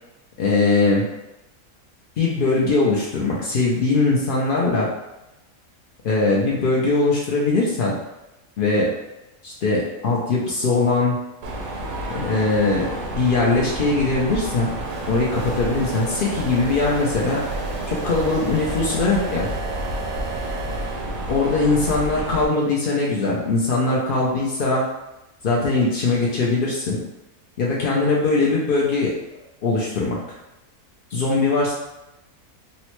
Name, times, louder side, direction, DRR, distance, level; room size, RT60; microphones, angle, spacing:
voice 1, 0.4-1.0 2.2-4.9 6.0-7.9 8.6-8.9 9.4-11.2 12.1-14.7 15.1-17.4 17.9-19.5 21.3-24.8 25.4-27.0 27.6-29.1 29.6-30.4 31.1-31.7, left 3 dB, 85° left, -4 dB, 0.4 m, -21 dB
Mechanisms, 11.4-22.4, right 1 dB, 70° right, 1.0 m, -30 dB
sound 1, 14.8-21.0, right 3 dB, 50° right, 0.5 m, -35 dB
3.6 x 2.1 x 2.9 m, 0.96 s
omnidirectional pair, 1.6 m